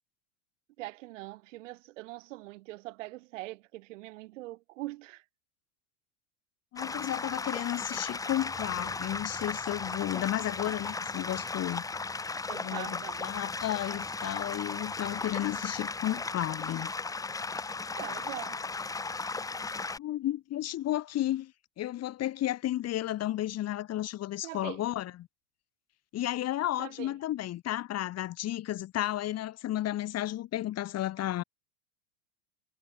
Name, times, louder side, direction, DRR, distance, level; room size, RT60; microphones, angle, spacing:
voice 1, 0.8-5.2 12.5-13.3 17.9-18.6 24.4-24.8 26.8-27.2, right 19 dB, 70° right, 7.3 m, -42 dB
voice 2, 6.7-11.8 12.6-16.9 20.0-21.5 21.8-25.1 26.1-31.4, left 13 dB, 40° left, 4.3 m, -33 dB
sound 1, 6.8-20.0, left 4 dB, 10° left, 0.8 m, -36 dB
hypercardioid pair, 105°, 38 cm